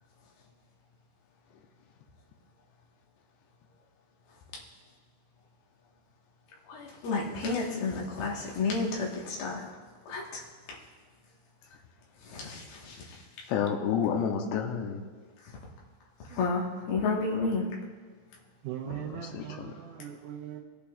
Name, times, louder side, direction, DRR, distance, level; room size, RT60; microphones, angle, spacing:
voice 1, 6.7-9.6 10.1-10.2 12.3-12.9 16.4-17.6, left 3 dB, 60° left, -3 dB, 2.8 m, -31 dB
voice 2, 13.5-15.0 18.8-19.8, left 7 dB, 80° left, 3 dB, 2.7 m, -30 dB
voice 3, 18.6-20.6, right 10 dB, 90° right, -2 dB, 3.4 m, -39 dB
19.0 x 8.6 x 2.4 m, 1.5 s
omnidirectional pair, 5.7 m